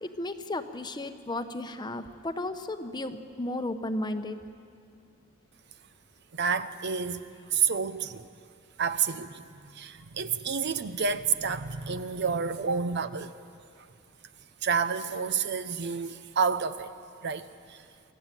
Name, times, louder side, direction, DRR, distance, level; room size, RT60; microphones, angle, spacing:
voice 1, 0.0-4.4, left 1 dB, 20° left, 8 dB, 0.9 m, -34 dB
voice 2, 6.3-7.2 7.5-8.3 8.8-9.4 9.7-13.3 14.6-16.9 17.2-17.8, right 6 dB, 55° right, 12 dB, 0.8 m, -29 dB
23.5 x 14.0 x 9.9 m, 2.4 s
head